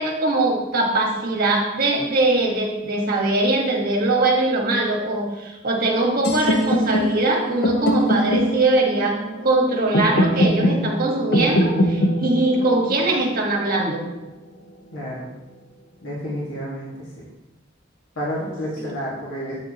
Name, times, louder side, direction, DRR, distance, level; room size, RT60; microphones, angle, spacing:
voice 1, 0.0-14.0 18.8-18.9, right 2 dB, 50° right, 1 dB, 1.4 m, -21 dB
sound 1, 6.2-14.2, equal, 60° left, 0.8 m, -23 dB
voice 2, 14.9-15.3 16.0-17.2 18.1-19.5, equal, 80° left, -6 dB, 1.7 m, -30 dB
8.1 x 6.5 x 2.9 m, 0.98 s
head